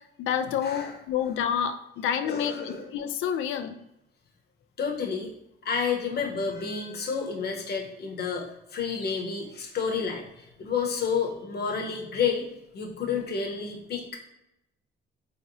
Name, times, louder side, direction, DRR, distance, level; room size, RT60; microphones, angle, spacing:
voice 1, 0.0-3.8, left 8 dB, 85° left, 8 dB, 0.4 m, -29 dB
voice 2, 0.6-1.0 2.2-2.9 4.8-5.3 5.6-12.5 12.7-14.2, left 6 dB, 55° left, 0 dB, 1.0 m, -30 dB
4.1 x 2.9 x 2.7 m, 0.85 s
cardioid pair, 90°, 20 cm